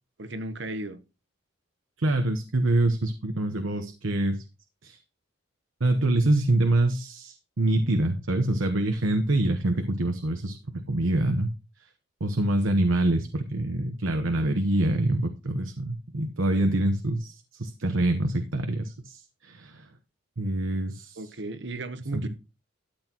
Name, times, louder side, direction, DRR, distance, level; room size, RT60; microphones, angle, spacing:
voice 1, 0.2-1.0 21.2-22.3, right 2 dB, 60° right, 1.1 m, -35 dB
voice 2, 2.0-4.4 4.8-5.0 5.8-11.5 12.2-19.9 20.4-21.2 22.1-22.3, right 1 dB, 80° right, 1.1 m, -25 dB
13.0 x 8.2 x 3.0 m
head